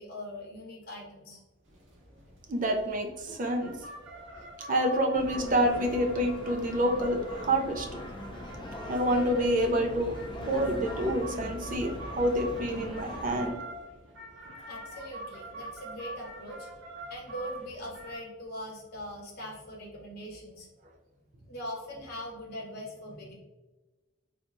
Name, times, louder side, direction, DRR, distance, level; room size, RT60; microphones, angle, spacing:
voice 1, 0.0-1.4 14.7-16.7 17.0-20.7 21.5-23.4, equal, 50° left, -2 dB, 1.0 m, -41 dB
sound 1, 1.7-18.2, right 1 dB, 70° right, 1.0 m, -45 dB
voice 2, 2.5-3.7 4.7-8.0 8.8-13.6, right 1 dB, 40° right, 3 dB, 0.5 m, -28 dB
sound 2, 5.1-13.5, left 1 dB, 25° left, 0.5 m, -41 dB
3.4 x 2.8 x 2.5 m, 1.2 s
head